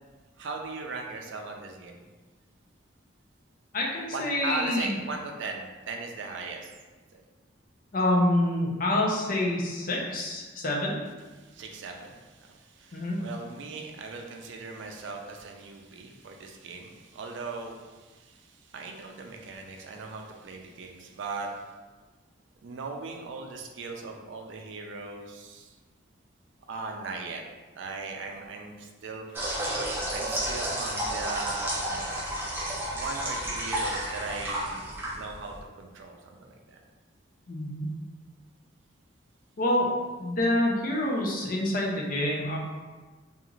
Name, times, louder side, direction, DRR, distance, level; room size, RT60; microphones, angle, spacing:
voice 1, 0.4-2.0 4.1-6.7 7.1-7.2 11.2-21.6 22.6-25.7 26.7-27.4 27.8-29.3 30.1-32.1 32.9-34.9 35.1-36.8, right 3 dB, 70° right, 2 dB, 0.4 m, -39 dB
voice 2, 3.7-5.0 7.9-11.0 12.9-13.2 37.5-37.7 39.6-39.9 40.2-42.6, left 1 dB, 45° left, -2 dB, 0.5 m, -27 dB
sound 1, 29.3-35.6, right 1 dB, 10° right, 0.5 m, -31 dB
2.4 x 2.4 x 3.0 m, 1.3 s
head